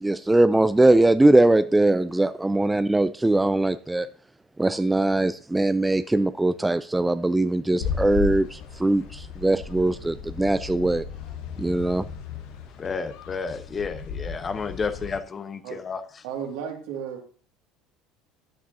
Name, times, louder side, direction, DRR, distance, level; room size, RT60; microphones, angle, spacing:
voice 1, 0.0-4.1 4.6-11.0 11.6-12.0, right 2 dB, 10° right, 0.4 m, -21 dB
sound 1, 7.8-15.2, left 6 dB, 70° left, 1.2 m, -35 dB
voice 2, 12.8-16.2, left 5 dB, 30° left, 1.0 m, -31 dB
voice 3, 16.2-17.3, right 8 dB, 75° right, 2.2 m, -34 dB
13.0 x 8.5 x 2.7 m
hypercardioid pair, 75°, 0 cm